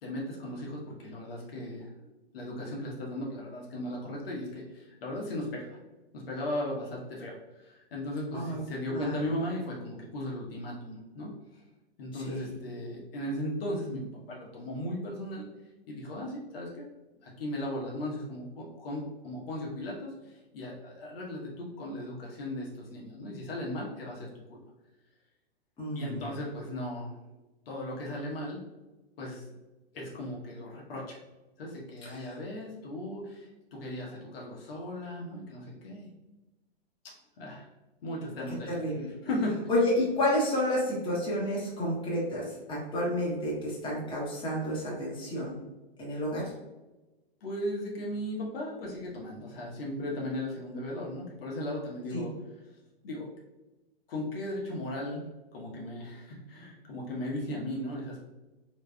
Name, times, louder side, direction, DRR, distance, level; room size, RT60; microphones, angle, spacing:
voice 1, 0.0-1.9 2.3-5.8 6.1-11.6 12.0-15.5 15.9-16.8 17.2-24.6 25.9-27.2 27.7-28.6 29.2-29.4 29.9-31.2 31.6-36.1 37.4-37.7 38.0-38.7 39.2-39.7 47.4-52.3 53.0-53.3 54.1-55.3 55.5-58.2, left 1 dB, 65° left, -2 dB, 1.0 m, -37 dB
voice 2, 8.9-9.3 12.1-12.5 25.8-26.3 32.0-32.4 38.7-39.1 39.7-45.6 46.0-46.5 52.1-52.3, left 1 dB, 15° left, -6 dB, 1.2 m, -30 dB
3.4 x 3.0 x 2.2 m, 1.1 s
hypercardioid pair, 120°, 31 cm